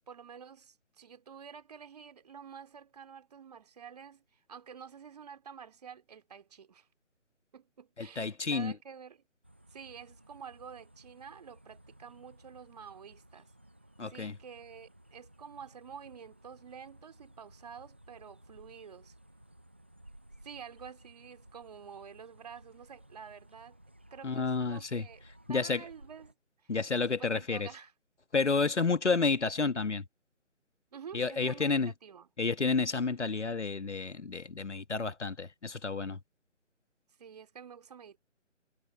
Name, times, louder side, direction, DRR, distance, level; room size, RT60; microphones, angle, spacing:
voice 1, 0.1-6.9 7.5-9.2 9.7-13.5 14.1-19.1 20.4-23.8 24.1-25.2 25.5-26.7 27.0-27.9 30.9-32.3 37.2-38.2, right 7 dB, 30° right, 2.4 m, -49 dB
voice 2, 8.0-8.7 14.0-14.4 24.2-25.1 25.5-25.8 26.7-27.7 28.3-30.0 31.1-31.9 32.4-36.2, left 4 dB, 65° left, 1.6 m, -30 dB
sound 1, 9.4-26.3, right 1 dB, 10° right, 0.7 m, -58 dB
figure-of-eight pair, 150°, 38 cm